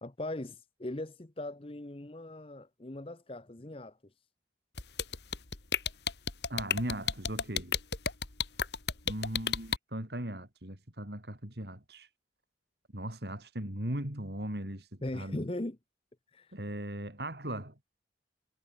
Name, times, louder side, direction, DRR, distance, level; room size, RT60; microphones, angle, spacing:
voice 1, 0.0-4.0 15.0-15.8 16.3-16.5, left 1 dB, 30° left, 0.9 m, -39 dB
sound 1, 4.8-9.8, left 7 dB, 70° left, 2.1 m, -31 dB
voice 2, 6.5-7.8 9.1-12.1 12.9-15.4 16.5-17.7, right 1 dB, 65° right, 4.0 m, -38 dB
head